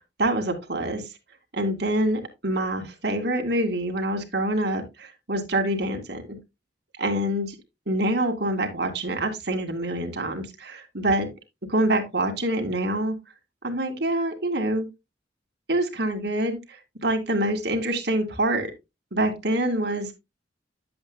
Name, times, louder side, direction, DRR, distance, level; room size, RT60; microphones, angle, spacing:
voice 1, 0.2-1.0 1.5-6.2 7.0-7.6 7.9-11.3 11.7-13.2 13.6-14.9 15.7-18.7 19.1-20.1, right 1 dB, 65° right, 4 dB, 2.2 m, -26 dB
10.5 x 7.9 x 2.2 m, 0.22 s
head